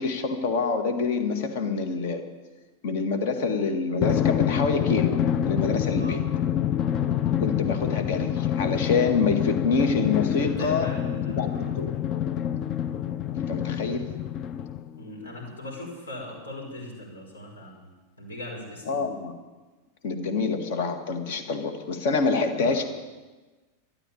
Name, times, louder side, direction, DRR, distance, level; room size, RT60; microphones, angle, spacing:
voice 1, 0.0-2.2 2.8-6.2 7.4-10.9 11.4-11.9 13.3-14.1 18.9-19.4 20.0-22.9, left 4 dB, 50° left, 7 dB, 1.8 m, -26 dB
Drum, 4.0-15.0, left 10 dB, 35° left, 0.5 m, -27 dB
voice 2, 10.4-11.7 15.0-17.8 18.2-19.1 22.5-22.7, left 1 dB, 70° left, -1 dB, 5.4 m, -39 dB
13.0 x 10.5 x 8.6 m, 1.2 s
figure-of-eight pair, 90°, 0 cm